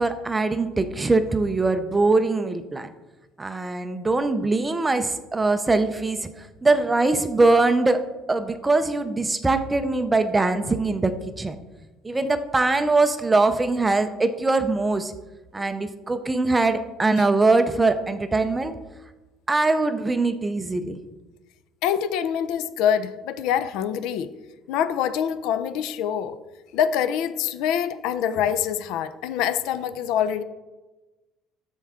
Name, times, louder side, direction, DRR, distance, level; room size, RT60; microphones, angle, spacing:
voice 1, 0.0-2.9 3.4-6.2 6.6-8.0 8.3-11.1 11.4-11.6 12.0-15.1 15.5-18.7 19.5-21.0, right 3 dB, 10° right, 10 dB, 0.4 m, -22 dB
voice 2, 21.8-24.3 24.7-26.4 26.7-30.4, left 9 dB, 70° left, 13 dB, 0.5 m, -25 dB
13.0 x 4.5 x 3.6 m, 1.1 s
cardioid pair, 170°, 0 cm